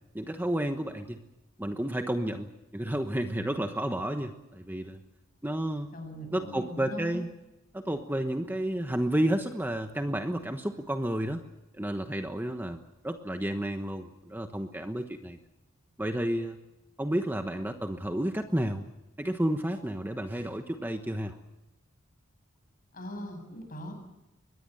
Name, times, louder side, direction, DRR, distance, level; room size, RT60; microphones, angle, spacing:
voice 1, 0.1-1.2 1.6-5.0 5.4-5.9 6.3-7.3 7.7-11.5 11.7-12.8 13.0-15.4 16.0-16.6 17.0-18.9 19.2-21.4, right 1 dB, 10° right, 6 dB, 1.2 m, -31 dB
voice 2, 5.9-7.2 22.9-23.9, equal, 45° left, 5 dB, 7.6 m, -40 dB
23.5 x 20.5 x 7.9 m, 0.98 s
head